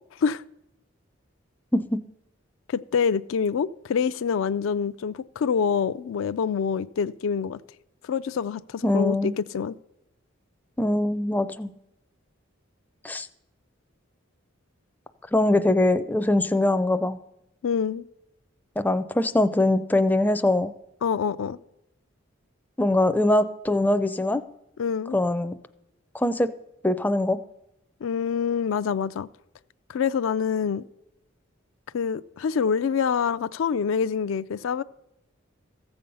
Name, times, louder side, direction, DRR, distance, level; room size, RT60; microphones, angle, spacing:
voice 1, 1.7-2.0 8.8-9.3 10.8-11.7 13.0-13.3 15.3-17.2 18.8-20.7 22.8-24.4 25.1-25.5 26.1-26.5 26.8-27.4, left 1 dB, 10° left, 0.4 m, -22 dB
voice 2, 2.7-7.6 8.0-9.8 17.6-18.0 21.0-21.6 24.8-25.2 28.0-29.3 29.9-30.8 31.9-34.8, left 6 dB, 75° left, 0.4 m, -26 dB
14.5 x 6.9 x 5.4 m
head